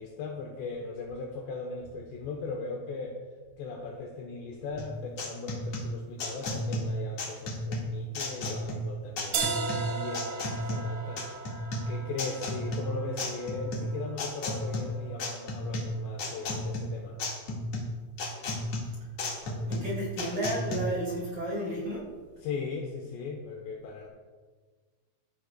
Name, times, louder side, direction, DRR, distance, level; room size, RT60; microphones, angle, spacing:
voice 1, 0.0-3.2 3.6-9.4 9.9-11.3 11.8-17.2 22.4-24.1, left 4 dB, 75° left, 1 dB, 2.9 m, -38 dB
sound 1, 4.8-20.8, left 1 dB, 50° left, 2.1 m, -34 dB
sound 2, 9.3-15.3, right 4 dB, 70° right, 4.1 m, -37 dB
voice 2, 19.7-22.0, right 1 dB, 35° right, -5 dB, 3.5 m, -32 dB
17.5 x 13.5 x 2.3 m, 1.4 s
omnidirectional pair, 5.5 m